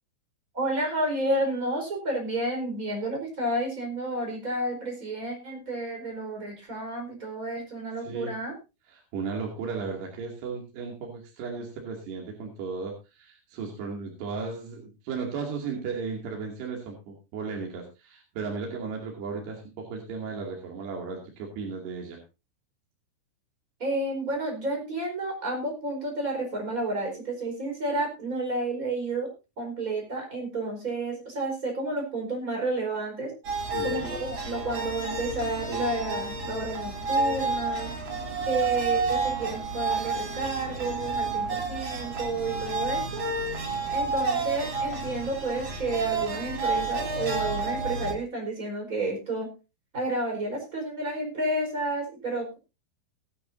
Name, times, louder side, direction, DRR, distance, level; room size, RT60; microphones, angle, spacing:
voice 1, 0.5-8.5 23.8-29.3 29.6-33.3 33.8-37.9 38.5-43.2 43.9-49.5 49.9-52.6, right 2 dB, 15° right, 2 dB, 4.3 m, -31 dB
voice 2, 8.0-8.3 8.9-22.2 33.7-34.1, right 5 dB, 60° right, 0 dB, 4.2 m, -35 dB
sound 1, 33.4-48.1, right 3 dB, 40° right, 2.0 m, -30 dB
19.0 x 11.0 x 2.7 m, 0.28 s
omnidirectional pair, 5.9 m